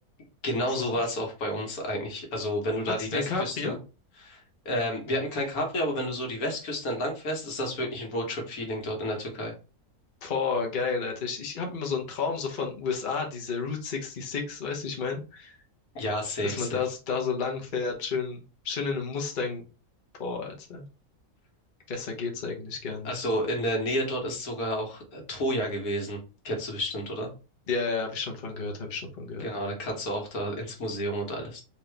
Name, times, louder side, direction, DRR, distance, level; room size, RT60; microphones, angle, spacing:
voice 1, 0.4-3.8 4.2-9.5 15.9-16.8 23.0-26.2 26.4-27.3 29.4-31.6, equal, 75° left, 1 dB, 1.6 m, -30 dB
voice 2, 3.0-3.8 10.2-15.6 16.4-19.6 20.2-20.8 21.9-23.3 27.7-29.5, left 5 dB, 40° left, 1 dB, 1.0 m, -31 dB
3.8 x 2.9 x 3.3 m, 0.33 s
omnidirectional pair, 1.6 m